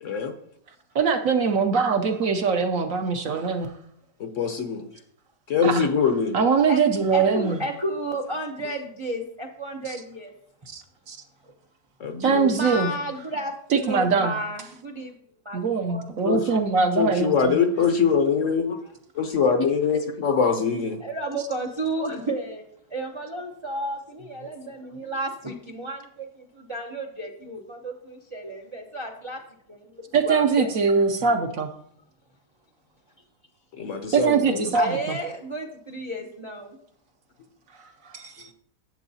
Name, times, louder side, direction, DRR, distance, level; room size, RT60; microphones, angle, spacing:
voice 1, 0.0-0.3 4.2-4.9 5.5-6.4 12.0-12.6 16.2-16.4 17.0-18.8 19.1-21.0 33.8-34.7, left 6 dB, 55° left, 7 dB, 0.9 m, -23 dB
voice 2, 0.9-3.7 5.6-5.9 6.3-7.6 9.9-10.0 10.7-11.2 12.2-12.9 13.7-14.4 15.5-17.6 30.1-31.7 34.1-35.2 37.8-38.5, right 5 dB, 65° right, 6 dB, 0.9 m, -22 dB
voice 3, 7.1-10.3 11.4-11.5 12.5-15.1 15.4-15.6 15.9-16.1 21.0-22.6 22.9-29.4 29.7-29.9 30.2-30.7 34.7-36.8, right 1 dB, 45° right, 1 dB, 0.3 m, -32 dB
11.0 x 7.7 x 2.7 m, 0.67 s
omnidirectional pair, 1.8 m